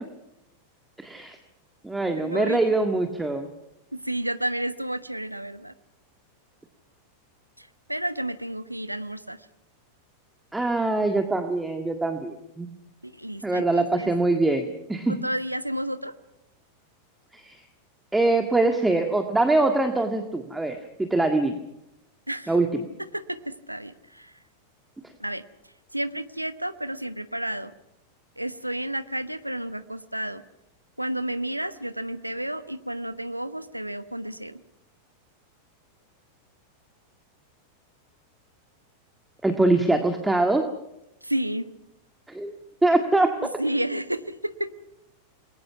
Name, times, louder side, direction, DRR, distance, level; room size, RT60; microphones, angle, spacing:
voice 1, 1.0-1.4 1.8-3.5 10.5-12.7 13.4-15.2 17.3-17.6 18.1-21.6 22.5-22.9 39.4-40.7 42.3-42.5 42.8-43.3, right 2 dB, 5° right, 6 dB, 1.8 m, -23 dB
voice 2, 2.1-2.6 3.9-5.7 7.6-9.4 13.0-14.1 15.1-16.1 22.3-22.5 23.1-24.3 25.2-25.4 25.9-27.7 28.4-30.4 31.0-34.6 41.2-41.6 43.6-44.7, right 1 dB, 90° right, 13 dB, 1.1 m, -31 dB
28.5 x 21.0 x 5.8 m, 0.88 s
figure-of-eight pair, 90°, 0 cm